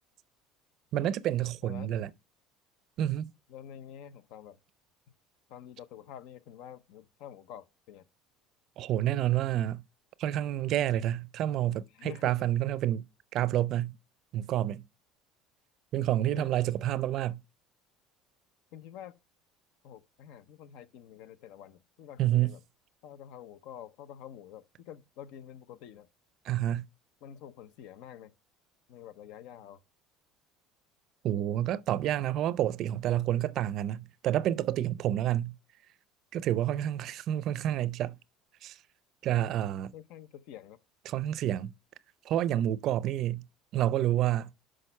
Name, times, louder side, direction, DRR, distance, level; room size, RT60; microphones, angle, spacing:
voice 1, 0.9-2.1 3.0-3.3 8.8-9.8 10.2-13.1 13.3-13.9 14.3-14.8 15.9-17.4 22.2-22.5 26.5-26.8 31.2-35.5 36.3-38.2 38.6-38.8 39.2-39.9 41.1-41.7 42.2-43.4 43.7-44.5, right 12 dB, 55° right, 0.5 m, -29 dB
voice 2, 3.5-4.6 5.5-8.1 11.9-12.4 16.3-16.6 18.7-19.2 19.8-22.6 23.0-26.1 27.2-28.3 28.9-29.8 35.0-35.3 39.9-40.8 41.4-41.6, left 10 dB, 70° left, 0.7 m, -48 dB
6.4 x 5.0 x 5.6 m
supercardioid pair, 115°, 0 cm